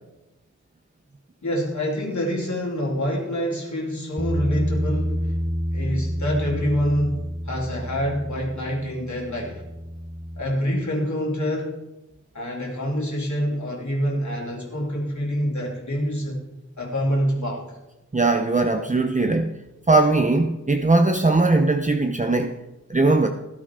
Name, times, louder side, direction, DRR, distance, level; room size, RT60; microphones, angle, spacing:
voice 1, 1.4-5.4 5.7-9.6 10.4-11.8 12.3-16.4 16.8-17.6, equal, 70° left, -3 dB, 3.2 m, -26 dB
Bass guitar, 4.2-10.4, equal, 5° right, 1.2 m, -28 dB
voice 2, 18.1-19.5 19.9-22.5 22.9-23.3, right 2 dB, 25° right, 5 dB, 0.8 m, -19 dB
18.5 x 11.5 x 3.7 m, 1.0 s
wide cardioid pair, 50°, 30 cm